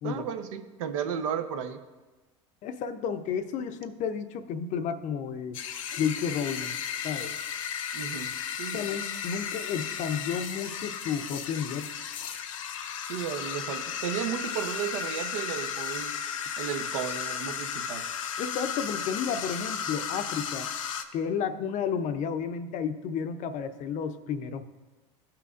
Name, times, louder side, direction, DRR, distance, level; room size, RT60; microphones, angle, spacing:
voice 1, 0.0-1.8 7.9-8.9 13.1-16.2 16.6-18.0, right 8 dB, 80° right, 8 dB, 0.8 m, -34 dB
voice 2, 2.6-5.6 6.0-6.8 7.0-7.3 8.7-11.9 18.4-20.7 21.1-24.7, left 7 dB, 50° left, 10 dB, 0.6 m, -32 dB
sound 1, 5.5-21.0, left 8 dB, 90° left, 0.6 m, -34 dB
15.0 x 5.8 x 2.5 m, 1.2 s
hypercardioid pair, 95°, 16 cm